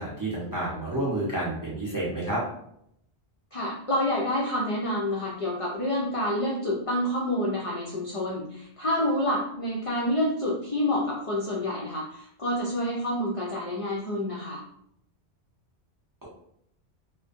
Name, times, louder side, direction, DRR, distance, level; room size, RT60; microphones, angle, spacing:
voice 1, 0.0-2.4, right 1 dB, 25° right, -6 dB, 0.4 m, -29 dB
voice 2, 3.5-14.6, left 1 dB, 50° left, -4 dB, 0.4 m, -28 dB
2.5 x 2.1 x 2.5 m, 0.72 s
omnidirectional pair, 1.1 m